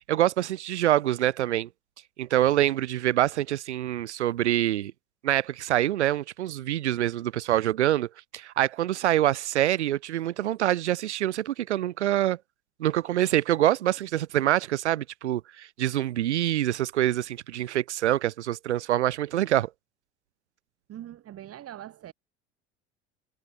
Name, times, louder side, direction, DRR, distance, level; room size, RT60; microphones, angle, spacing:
voice 1, 0.1-1.7 2.2-4.9 5.2-12.4 12.8-19.7, right 13 dB, 90° right, 0.8 m, -25 dB
voice 2, 20.9-22.1, right 12 dB, 45° right, 1.8 m, -42 dB
hypercardioid pair, 70°, 33 cm